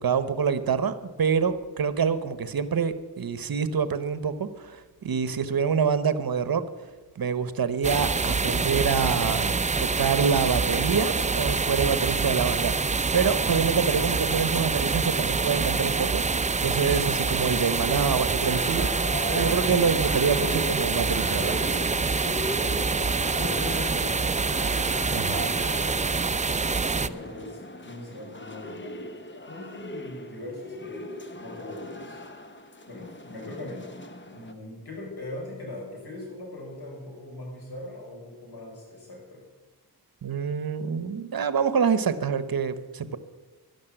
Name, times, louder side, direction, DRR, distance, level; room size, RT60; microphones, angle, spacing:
voice 1, 0.0-6.6 7.1-9.5 9.8-16.2 16.6-21.6 25.1-25.5 40.2-43.2, right 6 dB, 65° right, 13 dB, 1.0 m, -26 dB
sound 1, 7.8-27.1, right 4 dB, 20° right, 0.4 m, -26 dB
sound 2, 18.4-34.5, left 1 dB, 30° left, 1.0 m, -38 dB
voice 2, 19.2-19.7 22.7-26.1 26.7-29.0 29.5-32.2 32.9-33.9 34.3-39.4, left 2 dB, 80° left, -2 dB, 5.8 m, -40 dB
12.0 x 11.5 x 7.9 m, 1.2 s
wide cardioid pair, 120°, 38 cm